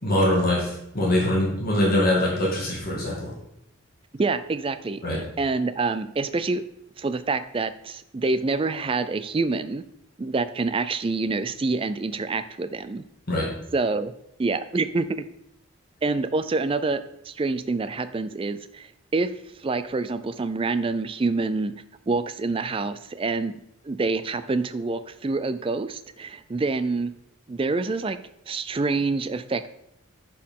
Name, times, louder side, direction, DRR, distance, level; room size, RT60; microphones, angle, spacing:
voice 1, 0.0-3.3 5.0-5.2 13.3-13.5, left 1 dB, 45° left, -4 dB, 2.1 m, -23 dB
voice 2, 4.1-6.6 7.0-9.8 10.2-13.0 13.7-14.1 14.4-15.2 16.0-18.9 19.1-19.3 19.6-21.7 22.1-23.5 23.9-27.1 27.5-28.2 28.5-29.7, right 3 dB, 25° right, 12 dB, 0.3 m, -26 dB
11.5 x 4.5 x 3.7 m, 0.79 s
head